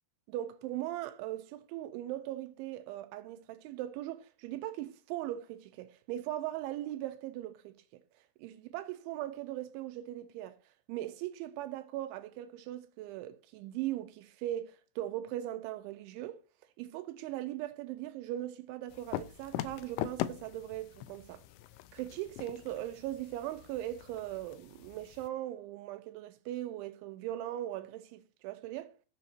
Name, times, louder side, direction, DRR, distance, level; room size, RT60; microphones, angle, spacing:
voice 1, 0.3-8.0 8.4-10.6 10.9-16.4 16.8-21.4 21.9-28.9, right 13 dB, 80° right, 3.1 m, -39 dB
sound 1, 18.9-25.3, left 14 dB, 85° left, 3.1 m, -42 dB
14.0 x 6.1 x 4.4 m
omnidirectional pair, 5.5 m